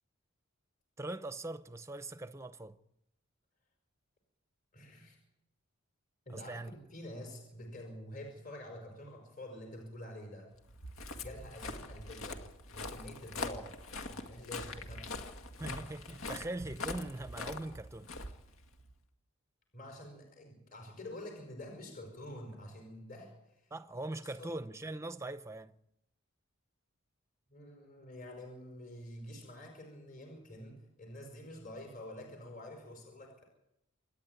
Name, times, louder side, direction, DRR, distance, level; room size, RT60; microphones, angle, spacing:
voice 1, 1.0-2.8 6.3-6.7 15.6-18.1 23.7-25.7, right 2 dB, 15° right, 0.7 m, -41 dB
voice 2, 4.7-5.2 6.3-10.5 11.1-12.4 12.7-13.7 14.1-15.1 19.7-23.7 24.4-24.6 27.5-33.4, left 1 dB, 40° left, 5.3 m, -47 dB
Walk footsteps, 10.6-18.9, left 3 dB, 75° left, 2.1 m, -43 dB
27.5 x 10.5 x 9.4 m
head